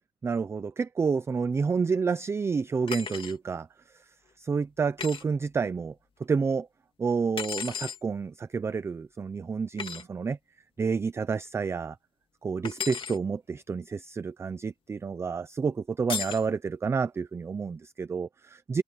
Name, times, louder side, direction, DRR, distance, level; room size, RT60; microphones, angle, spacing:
voice 1, 0.2-3.7 4.4-5.9 6.2-6.7 7.0-10.4 10.8-12.0 12.4-18.8, right 5 dB, 10° right, 0.4 m, -29 dB
sound 1, 2.9-3.4 5.0-5.2 7.4-8.0 9.8-10.0 12.6-13.2 16.1-16.5, left 7 dB, 25° left, 1.9 m, -34 dB
cardioid pair, 175°, 21 cm